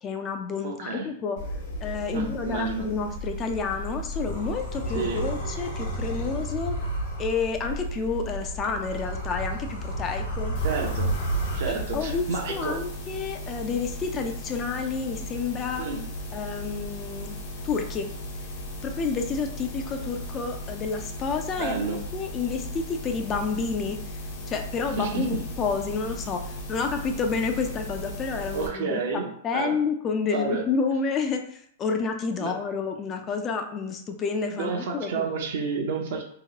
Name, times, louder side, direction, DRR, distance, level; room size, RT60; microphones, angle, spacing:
voice 1, 0.0-1.4 1.8-6.8 7.2-10.6 11.8-15.9 16.3-17.3 17.6-18.1 18.8-24.0 24.5-26.4 26.7-35.2, left 5 dB, 25° left, 5 dB, 0.4 m, -29 dB
voice 2, 0.6-1.1 2.1-2.9 4.9-5.2 10.6-11.1 11.5-12.8 15.8-16.1 21.6-22.0 25.0-25.4 28.5-29.8 30.3-30.7 32.4-32.6 34.5-36.2, right 5 dB, 65° right, 2 dB, 0.7 m, -30 dB
sound 1, 1.4-12.2, right 1 dB, 75° left, 1.1 m, -32 dB
sound 2, 10.5-28.7, left 1 dB, 50° left, 0.9 m, -37 dB
2.9 x 2.8 x 2.8 m, 0.65 s
hypercardioid pair, 135°, 0 cm